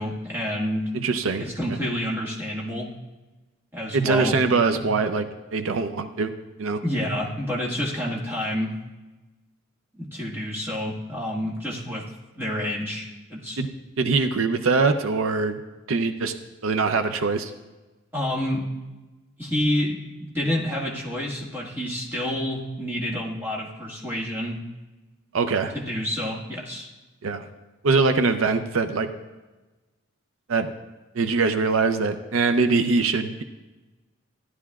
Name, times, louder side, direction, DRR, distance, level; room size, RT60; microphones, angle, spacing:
voice 1, 0.0-0.9 1.4-2.9 3.7-4.3 4.7-4.8 6.8-8.8 10.0-12.0 12.4-13.6 18.1-18.7 19.4-24.6 25.7-26.9, left 1 dB, 10° right, -4 dB, 1.7 m, -28 dB
voice 2, 1.0-1.4 3.9-5.2 5.5-6.3 6.6-6.8 13.6-13.7 14.0-15.6 15.9-16.3 16.6-17.5 25.3-25.7 27.2-27.4 27.8-29.1 30.5-30.7 31.2-33.4, right 4 dB, 80° right, 8 dB, 0.5 m, -22 dB
15.0 x 11.0 x 2.4 m, 1.2 s
head